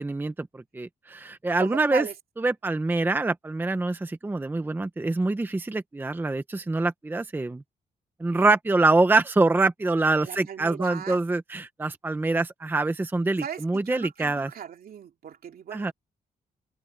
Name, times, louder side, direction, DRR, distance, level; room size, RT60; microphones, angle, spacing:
voice 1, 0.0-2.1 2.4-7.6 8.2-14.5 15.7-15.9, right 2 dB, 10° right, 0.8 m, -25 dB
voice 2, 1.6-2.1 10.2-11.2 13.4-15.9, right 8 dB, 65° right, 3.1 m, -37 dB
wide cardioid pair, 155°, 16 cm